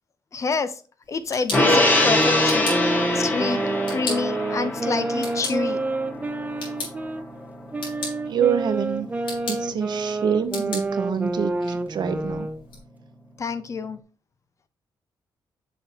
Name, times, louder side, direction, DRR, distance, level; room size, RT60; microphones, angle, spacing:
voice 1, 0.3-0.8 1.1-2.7 3.1-3.6 3.9-5.8 13.4-14.0, left 4 dB, 35° left, 12 dB, 0.6 m, -27 dB
sound 1, 1.0-12.8, left 3 dB, 80° left, 3.7 m, -39 dB
Gong, 1.5-8.1 8.5-8.6, left 1 dB, 20° left, 1.4 m, -24 dB
sound 2, 1.8-7.2 7.7-12.6, right 2 dB, 20° right, 0.6 m, -28 dB
voice 2, 8.3-9.1 9.5-12.5, right 7 dB, 60° right, 10 dB, 0.8 m, -26 dB
7.2 x 5.7 x 2.8 m, 0.37 s
wide cardioid pair, 135°, 8 cm